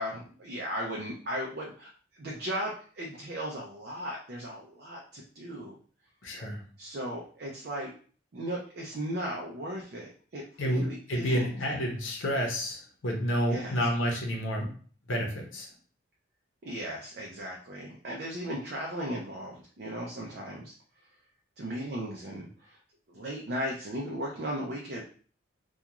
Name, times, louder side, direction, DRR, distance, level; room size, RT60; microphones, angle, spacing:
voice 1, 0.0-1.9 2.2-5.8 6.8-7.9 8.3-11.5 13.5-13.8 16.6-20.7 21.6-22.5 23.1-25.0, equal, 55° right, -2 dB, 0.4 m, -36 dB
voice 2, 6.2-6.6 10.6-14.7 15.1-15.7, equal, 90° left, 1 dB, 0.7 m, -30 dB
2.3 x 2.3 x 2.9 m, 0.43 s
head